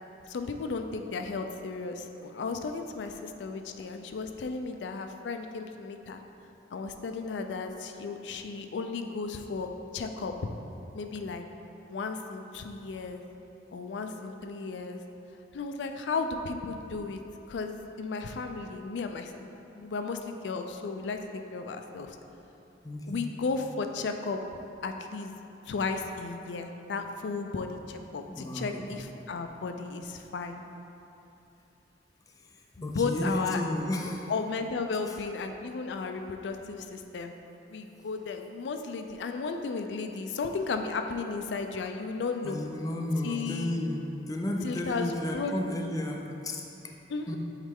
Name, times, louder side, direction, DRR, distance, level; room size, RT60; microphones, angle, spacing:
voice 1, 0.3-6.2 6.7-10.5 10.9-11.4 11.9-13.2 13.7-15.0 15.5-17.2 17.5-21.2 21.5-22.2 23.1-24.4 24.8-25.3 25.7-30.6 32.8-33.6 34.3-37.3 37.7-42.6 43.2-43.9 44.6-45.6 47.1-47.4, left 4 dB, 85° left, 6 dB, 0.4 m, -34 dB
voice 2, 22.8-23.2 28.3-29.0 32.4-32.5 32.8-34.3 35.1-35.2 42.4-46.9 47.3-47.4, left 1 dB, 20° left, 1 dB, 0.4 m, -33 dB
8.1 x 3.2 x 3.5 m, 2.9 s
head